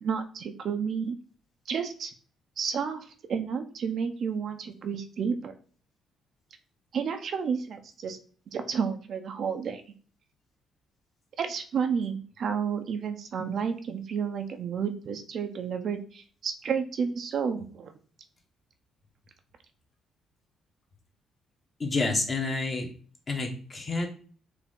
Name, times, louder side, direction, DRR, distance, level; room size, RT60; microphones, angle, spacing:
voice 1, 0.0-1.2 1.7-2.1 2.6-5.5 6.9-8.2 8.5-9.8 11.4-17.9, right 6 dB, 60° right, 7 dB, 0.6 m, -31 dB
voice 2, 21.8-22.9 23.3-24.1, left 3 dB, 35° left, 0 dB, 1.3 m, -29 dB
4.7 x 2.7 x 3.7 m, 0.43 s
cardioid pair, 90°, 0 cm